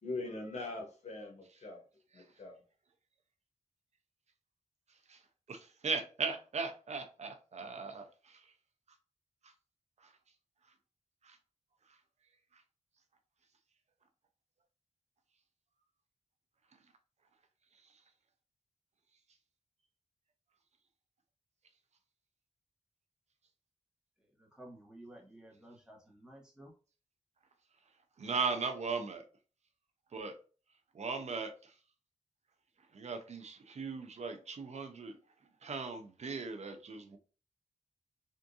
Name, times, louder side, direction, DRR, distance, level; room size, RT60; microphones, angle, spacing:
voice 1, 0.0-1.8 2.1-2.6, left 2 dB, 60° left, 1.1 m, -42 dB
voice 2, 5.5-8.5 9.4-9.5 10.0-10.1 11.2-11.4 11.9-12.0 12.5-12.6 17.8-17.9 28.2-29.2 30.1-30.3 30.9-31.7 32.9-35.2 35.6-37.2, right 4 dB, 60° right, 0.5 m, -38 dB
voice 3, 24.2-26.7, right 1 dB, 5° right, 1.1 m, -54 dB
3.5 x 2.5 x 2.6 m
wide cardioid pair, 110°, 13 cm